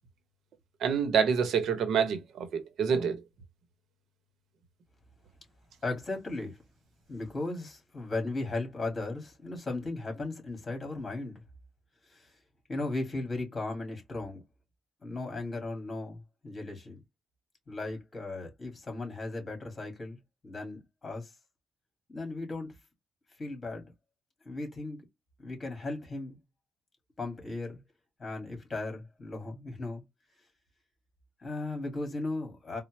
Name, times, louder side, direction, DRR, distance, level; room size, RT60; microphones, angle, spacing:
voice 1, 0.8-3.2, right 6 dB, 70° right, 0.8 m, -27 dB
voice 2, 5.8-6.6 7.1-11.4 12.1-12.3 12.7-14.4 15.0-17.0 17.7-20.2 20.4-21.3 22.1-22.7 23.4-23.9 24.4-25.0 25.4-26.4 27.2-27.8 28.2-30.0 31.4-32.8, left 2 dB, 30° left, 2.1 m, -36 dB
4.1 x 2.1 x 3.1 m
cardioid pair, 95°, 0 cm